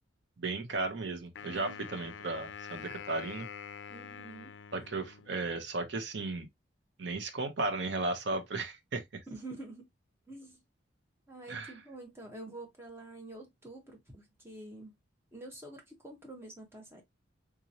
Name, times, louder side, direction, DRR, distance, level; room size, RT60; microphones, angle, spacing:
voice 1, 0.4-3.5 4.7-6.5 7.0-9.0 11.5-11.7, right 3 dB, 65° right, 0.7 m, -35 dB
Wind instrument woodwind instrument, 1.4-5.6, left 7 dB, 70° left, 0.4 m, -46 dB
voice 2, 1.5-1.8 3.9-4.5 9.3-9.9 10.3-10.6 11.3-14.9 15.3-17.0, right 2 dB, 15° right, 1.0 m, -47 dB
3.7 x 2.9 x 2.6 m
head